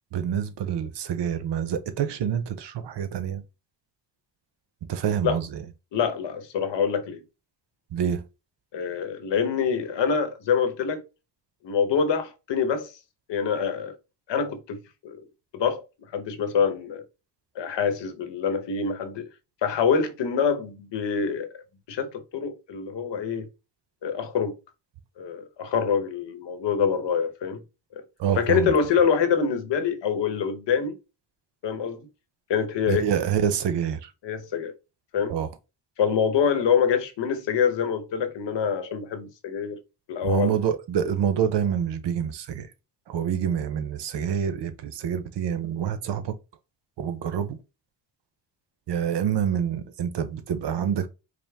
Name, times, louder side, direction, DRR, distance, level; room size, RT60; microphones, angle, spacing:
voice 1, 0.1-3.4 4.9-5.6 7.9-8.2 28.2-28.7 32.9-34.1 35.3-35.5 40.2-42.7 43.1-46.3 47.0-47.6 48.9-51.1, right 8 dB, 75° right, 0.8 m, -27 dB
voice 2, 5.9-7.2 8.7-11.0 11.6-12.9 13.3-14.0 14.3-15.2 15.5-15.8 16.1-17.0 17.6-19.3 19.6-21.6 21.9-23.5 24.0-24.5 25.2-27.6 28.4-30.9 31.6-32.0 32.5-33.1 34.2-34.7 35.1-35.3 36.0-39.8 40.1-40.5, left 6 dB, 80° left, 1.0 m, -25 dB
5.0 x 2.1 x 3.4 m
cardioid pair, 120°, 42 cm